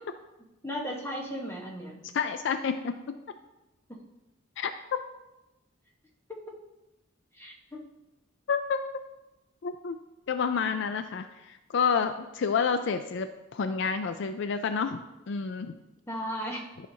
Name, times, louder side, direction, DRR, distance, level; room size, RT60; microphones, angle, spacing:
voice 1, 0.6-2.0 7.3-7.8 16.1-16.7, equal, 10° left, -1 dB, 1.2 m, -35 dB
voice 2, 2.1-2.9 4.6-5.0 8.5-8.8 9.6-10.0 10.3-15.0 15.3-15.7, left 6 dB, 60° left, 9 dB, 0.4 m, -29 dB
12.0 x 5.7 x 2.8 m, 0.98 s
head